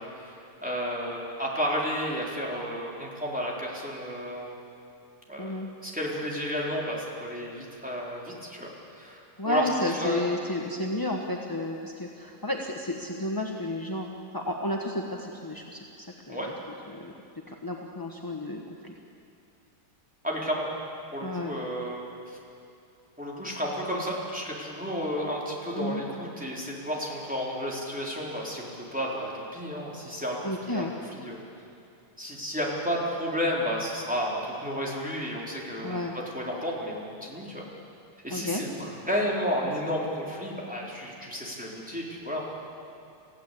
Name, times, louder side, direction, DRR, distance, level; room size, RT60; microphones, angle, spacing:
voice 1, 0.0-4.5 5.3-10.2 16.3-16.5 20.2-20.7 21.1-22.4 23.2-31.4 32.2-36.0 36.3-37.7 38.2-42.4, equal, 5° right, -4 dB, 4.1 m, -32 dB
voice 2, 5.4-5.7 9.4-14.1 14.3-15.8 16.3-16.5 16.9-17.1 17.5-18.9 21.2-21.6 25.7-26.0 30.4-30.9 35.8-36.1 38.3-38.6, left 1 dB, 15° left, 0 dB, 0.9 m, -32 dB
28.5 x 16.0 x 8.5 m, 2.6 s
omnidirectional pair, 2.3 m